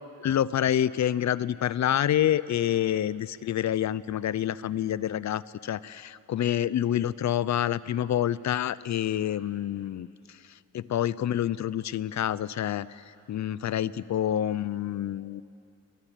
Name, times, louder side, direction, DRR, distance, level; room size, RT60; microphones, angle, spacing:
voice 1, 0.2-10.4 10.7-15.4, left 11 dB, 55° left, 18 dB, 0.6 m, -27 dB
24.0 x 20.0 x 9.1 m, 2.7 s
cardioid pair, 130°, 35 cm